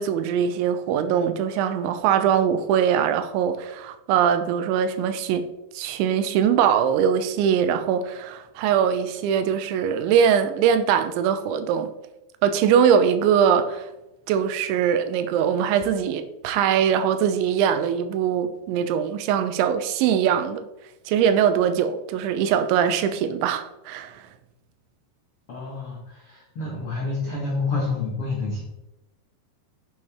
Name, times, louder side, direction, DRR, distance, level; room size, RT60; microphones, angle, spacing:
voice 1, 0.0-5.5 5.7-11.9 12.4-13.9 14.3-20.7 21.1-24.2, right 8 dB, 85° right, 3.1 m, -22 dB
voice 2, 25.5-28.6, left 3 dB, 80° left, 1.2 m, -28 dB
9.5 x 7.1 x 3.5 m
omnidirectional pair, 5.2 m